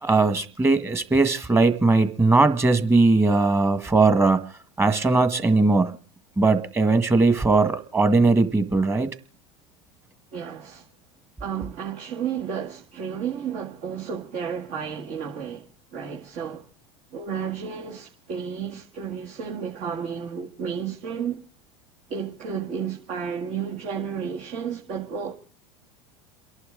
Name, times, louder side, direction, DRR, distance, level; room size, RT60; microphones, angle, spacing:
voice 1, 0.0-4.4 4.8-6.0 6.4-9.1, right 3 dB, 15° right, 1.7 m, -19 dB
voice 2, 10.3-10.9 11.4-15.7 15.9-16.6 17.1-21.4 22.1-25.3, right 7 dB, 55° right, 2.1 m, -32 dB
28.5 x 11.5 x 3.9 m
hypercardioid pair, 90°, 16 cm